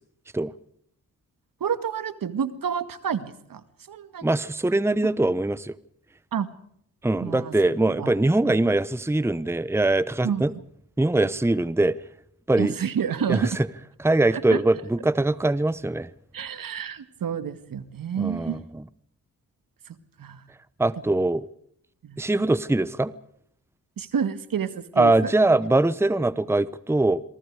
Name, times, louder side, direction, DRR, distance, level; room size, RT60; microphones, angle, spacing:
voice 1, 1.6-3.6 3.9-4.3 6.3-6.5 7.2-8.2 8.5-8.6 10.2-10.4 12.6-13.6 14.3-14.6 16.3-18.6 19.9-20.4 22.0-22.2 24.0-25.3, right 7 dB, 70° right, 2.0 m, -29 dB
voice 2, 4.2-5.7 7.0-10.5 11.0-12.0 12.5-12.7 13.3-13.7 14.0-16.1 18.2-18.8 20.8-21.5 22.2-23.1 25.0-27.2, right 2 dB, 5° right, 1.0 m, -22 dB
27.0 x 23.5 x 4.9 m
cardioid pair, 55°, 36 cm